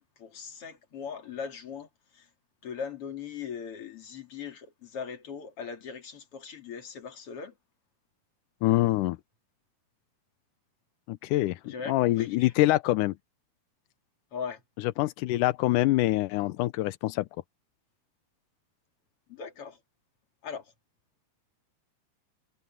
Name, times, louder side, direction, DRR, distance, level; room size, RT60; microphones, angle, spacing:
voice 1, 0.0-2.3 2.6-7.5 11.6-12.7 14.3-14.6 19.3-19.8 20.4-20.7, left 6 dB, 40° left, 3.3 m, -40 dB
voice 2, 8.6-9.2 11.1-13.1 15.0-17.3, left 17 dB, 85° left, 1.8 m, -25 dB
omnidirectional pair, 4.4 m